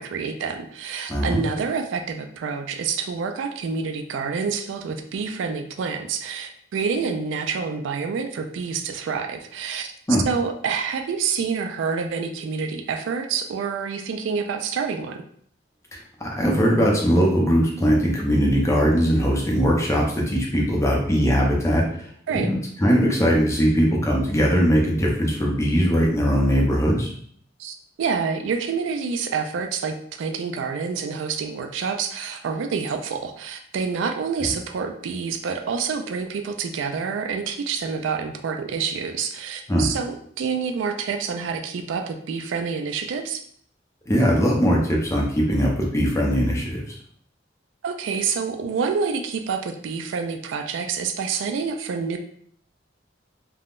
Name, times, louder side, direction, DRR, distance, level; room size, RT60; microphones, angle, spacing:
voice 1, 0.0-9.9 10.3-15.2 22.3-22.5 27.6-43.4 47.8-52.2, right 5 dB, 75° right, 6 dB, 0.3 m, -27 dB
voice 2, 1.1-1.4 10.1-10.2 16.2-22.1 22.3-27.1 39.7-39.9 44.1-46.9, equal, 15° left, -2 dB, 0.6 m, -20 dB
3.5 x 2.1 x 2.4 m, 0.62 s
head